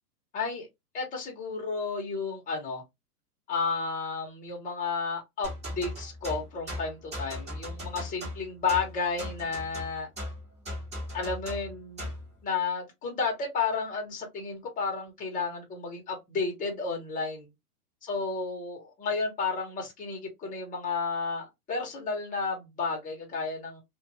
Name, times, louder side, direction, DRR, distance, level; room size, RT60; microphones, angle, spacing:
voice 1, 0.3-0.7 0.9-2.8 3.5-10.1 11.1-12.1 12.4-17.5 18.0-23.8, left 4 dB, 15° left, 1.0 m, -32 dB
sound 1, 5.4-12.3, left 1 dB, 15° right, 1.3 m, -38 dB
2.5 x 2.5 x 2.8 m
hypercardioid pair, 130°, 46 cm